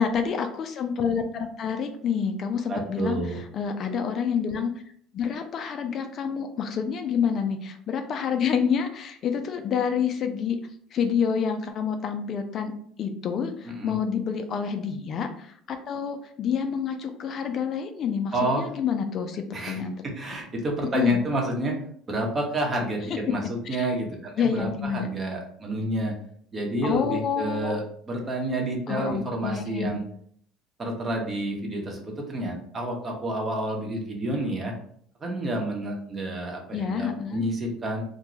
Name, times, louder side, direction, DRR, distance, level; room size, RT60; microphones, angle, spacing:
voice 1, 0.0-3.2 3.5-4.7 5.1-10.6 10.9-12.7 13.0-20.0 20.9-21.2 23.8-23.9 24.4-25.1 26.8-27.8 28.9-30.0 36.7-37.4, left 7 dB, 50° left, 6 dB, 0.4 m, -28 dB
voice 2, 2.7-3.4 13.7-14.0 18.3-18.6 19.5-21.7 22.1-26.1 26.5-30.0 30.8-34.7 35.2-38.0, right 1 dB, 30° right, 1 dB, 0.9 m, -29 dB
2.5 x 2.2 x 3.0 m, 0.62 s
supercardioid pair, 95°, 0 cm